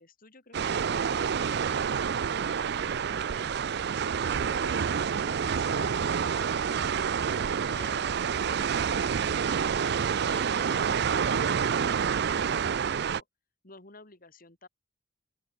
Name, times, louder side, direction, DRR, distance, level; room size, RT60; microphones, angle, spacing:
voice 1, 0.0-3.5 4.0-7.1 7.7-9.8 10.2-13.3 13.6-14.7, left 3 dB, 45° left, 3.1 m, -52 dB
sound 1, 0.5-13.2, right 7 dB, 55° right, 0.4 m, -28 dB
open air
head